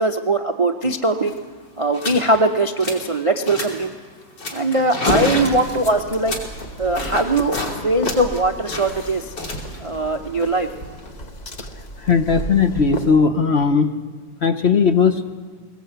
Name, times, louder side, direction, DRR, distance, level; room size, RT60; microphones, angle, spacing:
voice 1, 0.0-1.3 1.8-3.9 4.5-6.3 6.8-9.3 9.8-10.7, right 2 dB, 40° right, 5 dB, 0.4 m, -20 dB
sound 1, 0.9-1.0 1.2-1.4 1.9-2.2 2.6-3.1 3.4-3.9 4.4-7.7 8.0-11.1, left 2 dB, 70° left, 3.7 m, -30 dB
sound 2, 5.1-13.1, equal, 25° left, 1.1 m, -31 dB
voice 2, 12.0-13.9 14.4-15.2, left 5 dB, 45° left, 8 dB, 0.9 m, -17 dB
20.5 x 19.5 x 8.1 m, 1.5 s
omnidirectional pair, 1.9 m